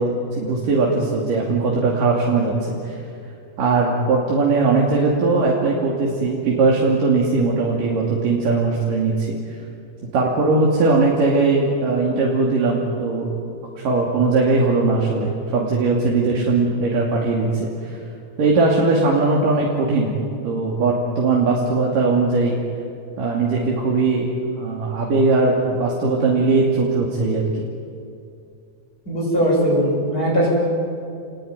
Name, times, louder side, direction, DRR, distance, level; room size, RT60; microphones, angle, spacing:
voice 1, 0.0-3.0 3.6-9.4 10.1-13.3 13.8-17.9 18.4-20.2 20.4-22.6 23.2-24.3 24.6-27.5, right 3 dB, 90° right, -3 dB, 4.4 m, -19 dB
voice 2, 29.1-30.5, equal, 25° left, -5 dB, 8.0 m, -19 dB
30.0 x 20.0 x 9.5 m, 2.4 s
omnidirectional pair, 3.7 m